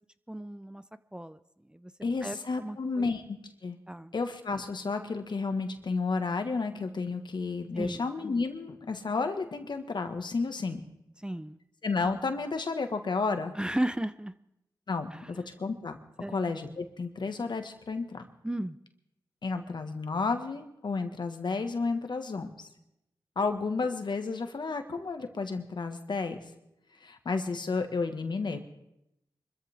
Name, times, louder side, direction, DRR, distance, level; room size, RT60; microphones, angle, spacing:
voice 1, 0.3-0.8 1.1-1.4 1.7-1.9 2.2-3.1 3.9-4.1 7.7-8.1 11.2-11.6 13.5-14.3 15.1-15.3 16.2-16.4 18.4-18.8, right 1 dB, 10° right, 13 dB, 0.7 m, -34 dB
voice 2, 2.0-3.8 4.1-10.8 11.8-13.5 14.9-16.0 16.3-18.2 19.4-22.7 23.3-26.4 27.0-28.6, left 4 dB, 70° left, 7 dB, 1.6 m, -32 dB
24.0 x 14.0 x 3.6 m, 0.83 s
cardioid pair, 40°, 8 cm